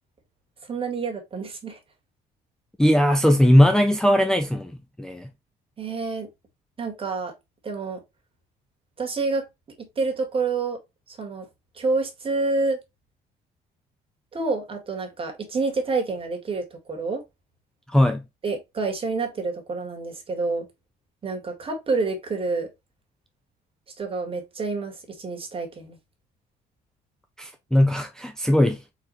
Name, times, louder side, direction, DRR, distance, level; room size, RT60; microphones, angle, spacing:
voice 1, 0.7-1.8 5.8-6.3 6.8-7.3 7.6-8.0 9.0-9.4 9.8-10.8 11.1-11.5 11.7-12.8 14.3-17.2 18.4-20.7 21.2-22.7 24.0-26.0, right 3 dB, 30° right, 1.8 m, -28 dB
voice 2, 2.8-5.3 17.9-18.3 27.4-28.8, left 1 dB, 5° left, 0.5 m, -19 dB
4.1 x 4.1 x 3.1 m
cardioid pair, 110°, 17 cm